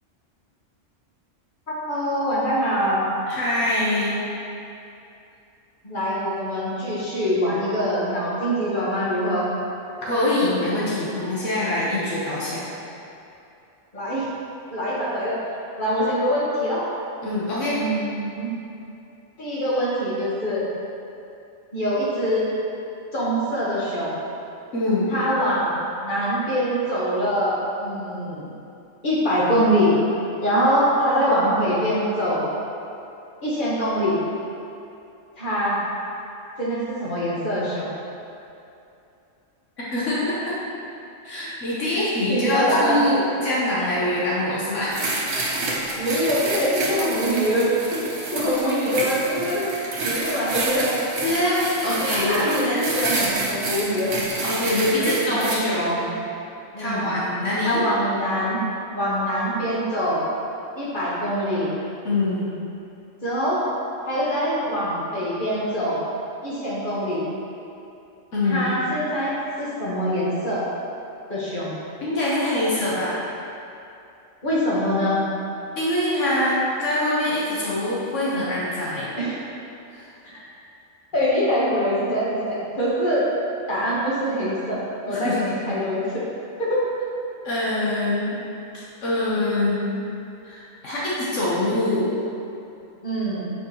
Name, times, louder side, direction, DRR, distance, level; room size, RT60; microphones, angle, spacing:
voice 1, 1.7-3.0 5.8-9.5 13.9-14.3 14.7-15.4 15.8-16.8 17.7-18.6 19.4-20.7 21.7-22.5 23.1-24.2 25.1-28.5 29.0-29.9 30.4-32.5 33.4-34.2 35.4-35.8 36.6-37.9 41.4-41.5 41.9-42.0 42.3-43.0 46.0-48.0 48.3-49.6 50.0-51.0 51.9-54.2 54.9-56.1 56.7-57.1 57.6-58.6 58.9-60.2 60.7-61.7 63.2-63.6 64.1-66.0 66.4-67.3 68.4-70.6 71.3-71.7 74.4-75.2 79.2-79.3 80.2-80.4 81.1-83.3 83.7-86.2 86.6-86.9 93.0-93.5, equal, 40° left, -8 dB, 1.6 m, -24 dB
voice 2, 3.3-4.2 10.0-12.7 17.2-17.8 24.7-25.1 39.9-40.5 41.2-45.0 51.2-52.8 54.4-56.0 56.8-57.8 62.0-62.5 68.3-68.7 72.0-73.2 75.8-79.1 79.9-80.1 85.1-85.4 87.4-88.4 89.0-90.0 90.4-92.1, left 1 dB, 75° left, -8 dB, 1.5 m, -24 dB
sound 1, 44.9-55.6, right 2 dB, 75° right, 1.3 m, -28 dB
7.7 x 5.0 x 3.1 m, 2.7 s
omnidirectional pair, 1.3 m